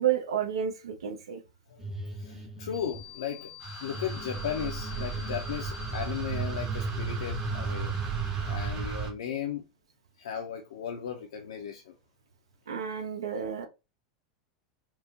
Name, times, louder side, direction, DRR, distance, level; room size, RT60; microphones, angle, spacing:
voice 1, 0.0-1.4 12.7-13.7, right 9 dB, 65° right, 0.6 m, -30 dB
voice 2, 1.7-3.5 3.8-8.0 8.5-9.7 10.2-11.9, left 8 dB, 65° left, 0.4 m, -36 dB
sound 1, 1.8-3.0 3.6-8.9, right 1 dB, 15° right, 0.6 m, -38 dB
sound 2, 2.7-8.5, left 2 dB, 90° right, 0.9 m, -47 dB
sound 3, 3.6-9.1, right 7 dB, 30° right, 1.0 m, -35 dB
4.4 x 2.0 x 2.4 m
figure-of-eight pair, 85°, 3 cm